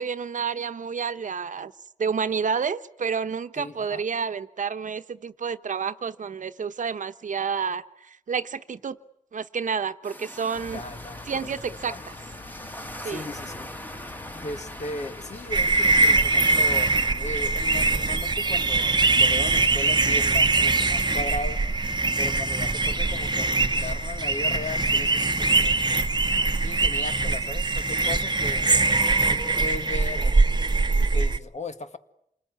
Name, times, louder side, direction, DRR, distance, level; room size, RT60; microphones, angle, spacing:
voice 1, 0.0-1.7 2.0-9.0 9.3-10.8 11.3-11.9 13.0-13.2, right 6 dB, 75° right, 11 dB, 1.0 m, -29 dB
voice 2, 3.6-4.0 10.7-12.0 13.0-13.7 14.3-21.6 22.2-26.1 26.6-28.7 29.3-30.4 31.1-32.0, left 2 dB, 65° left, 8 dB, 1.8 m, -37 dB
sound 1, 10.0-17.1, equal, 15° left, 1.8 m, -42 dB
sound 2, 10.5-27.3, left 3 dB, 35° left, 1.1 m, -45 dB
sound 3, 15.5-31.4, right 3 dB, 35° right, 0.9 m, -22 dB
27.5 x 20.0 x 9.5 m, 0.77 s
wide cardioid pair, 75°, 13 cm